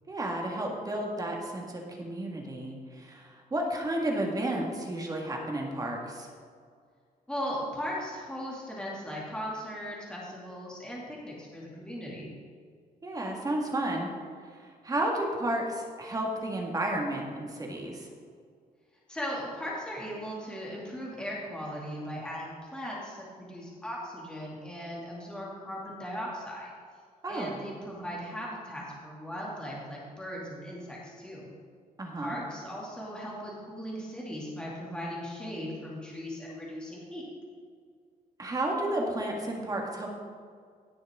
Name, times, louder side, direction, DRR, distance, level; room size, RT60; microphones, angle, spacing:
voice 1, 0.1-6.3 13.0-14.1 14.6-18.1 27.2-27.5 32.0-32.4 38.4-40.1, right 1 dB, 25° right, 0 dB, 1.8 m, -32 dB
voice 2, 7.3-12.3 19.1-26.7 27.3-31.5 32.2-37.2, equal, 5° left, -5 dB, 2.4 m, -38 dB
17.5 x 6.3 x 3.7 m, 2.1 s
cardioid pair, 125°, 15 cm